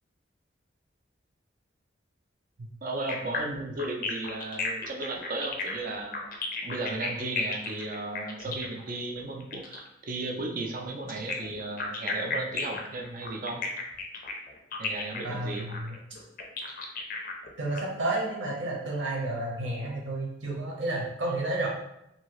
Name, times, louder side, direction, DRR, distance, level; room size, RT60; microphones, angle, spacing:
voice 1, 2.6-6.1 6.6-13.6 14.8-15.7, right 2 dB, 45° right, 1 dB, 0.5 m, -35 dB
sound 1, 3.1-9.9 11.1-17.8, left 4 dB, 45° left, 0.5 m, -35 dB
voice 2, 15.2-16.0 17.6-21.7, right 2 dB, 75° right, -3 dB, 0.9 m, -31 dB
2.8 x 2.7 x 3.0 m, 0.84 s
head